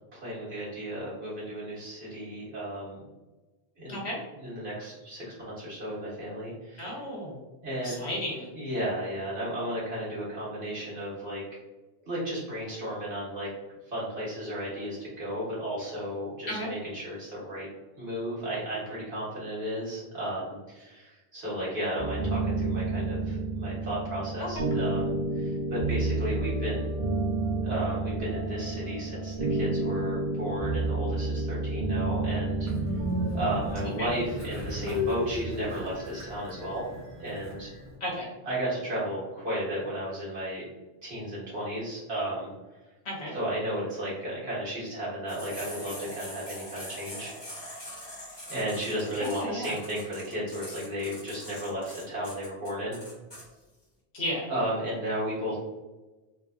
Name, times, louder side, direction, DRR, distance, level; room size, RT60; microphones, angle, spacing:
voice 1, 0.1-3.0 3.8-4.0 4.4-6.9 7.6-8.0 8.5-11.4 12.1-13.5 13.9-17.7 18.0-26.9 27.6-32.7 33.3-36.8 37.2-37.7 38.5-40.7 41.0-42.5 43.3-47.8 48.5-53.0 54.5-55.6, equal, 65° right, -7 dB, 1.8 m, -34 dB
voice 2, 3.9-4.2 6.8-7.4 7.8-8.5 16.5-16.7 24.4-24.6 34.0-34.1 38.0-38.4 43.0-43.3 49.1-49.8 54.1-54.5, equal, 75° left, -3 dB, 1.3 m, -33 dB
sound 1, 22.0-34.1, right 2 dB, 40° right, 1.6 m, -30 dB
Train, 32.7-37.9, left 1 dB, 15° right, 0.9 m, -34 dB
sound 2, 45.3-53.4, equal, 25° left, 1.3 m, -43 dB
3.8 x 2.8 x 2.4 m, 1.1 s
omnidirectional pair, 1.1 m